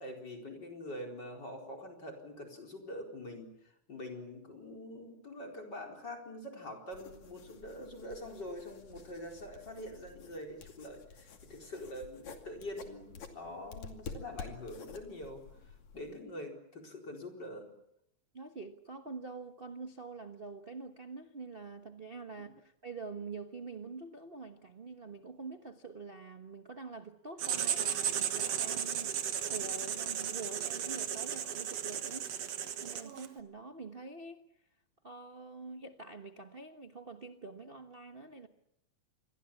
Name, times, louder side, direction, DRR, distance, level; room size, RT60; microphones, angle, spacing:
voice 1, 0.0-3.5 3.9-15.4 15.9-17.7 22.4-22.5, left 1 dB, 35° left, 4.8 m, -45 dB
sound 1, 6.9-16.1, left 5 dB, 70° left, 3.8 m, -50 dB
voice 2, 18.3-32.3 32.8-34.4 35.0-38.5, right 4 dB, 75° right, 0.5 m, -46 dB
Writing, 27.4-33.4, right 9 dB, 60° right, 2.4 m, -35 dB
28.0 x 23.0 x 7.2 m
omnidirectional pair, 3.4 m